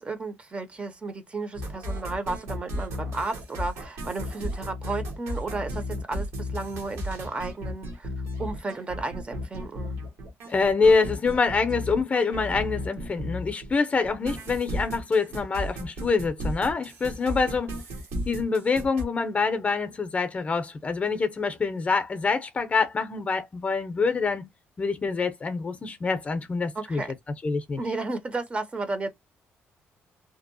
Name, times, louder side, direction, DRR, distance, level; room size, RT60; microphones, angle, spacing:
voice 1, 0.0-8.1 8.4-10.0 26.7-27.1 27.8-29.1, right 3 dB, 25° right, 0.5 m, -33 dB
sound 1, 1.5-13.7 14.0-19.0, equal, 85° right, 1.0 m, -34 dB
voice 2, 10.5-17.7 18.3-24.5 24.8-27.0 27.4-27.8, left 4 dB, 30° left, 0.5 m, -25 dB
2.7 x 2.0 x 2.5 m
cardioid pair, 115°, 4 cm